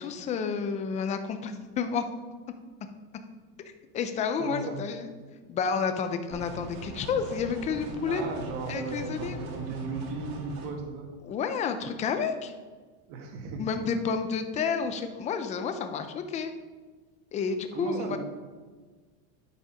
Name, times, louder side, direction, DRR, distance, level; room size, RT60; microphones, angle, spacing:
voice 1, 0.0-2.0 3.9-5.1 5.5-8.2 8.7-9.4 11.2-12.5 13.6-16.5 17.3-18.2, left 6 dB, 15° left, 8 dB, 0.4 m, -30 dB
voice 2, 4.4-4.8 8.1-11.1 13.1-13.7 17.7-18.2, right 3 dB, 55° right, 2 dB, 2.0 m, -36 dB
sound 1, 6.3-10.7, right 3 dB, 70° right, 3.0 m, -41 dB
12.0 x 5.2 x 5.0 m, 1.4 s
supercardioid pair, 150°, 45 cm